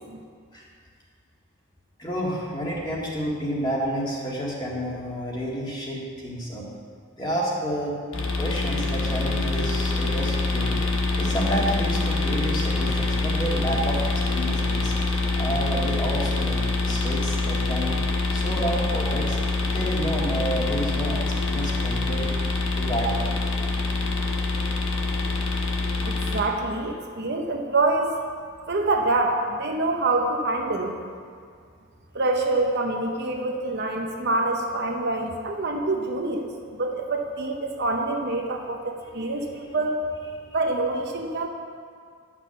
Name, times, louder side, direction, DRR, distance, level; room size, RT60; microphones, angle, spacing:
voice 1, 2.0-6.7 7.2-8.0 8.4-10.8 11.2-14.9 15.3-17.9 18.3-22.3 22.7-23.3, equal, 20° left, -4 dB, 1.9 m, -30 dB
sound 1, 8.1-26.4, left 2 dB, 60° left, 1.2 m, -25 dB
voice 2, 26.1-28.1 28.7-31.0 32.1-40.0 40.5-41.5, right 2 dB, 50° right, 2 dB, 0.8 m, -26 dB
11.0 x 6.1 x 7.1 m, 2.1 s
head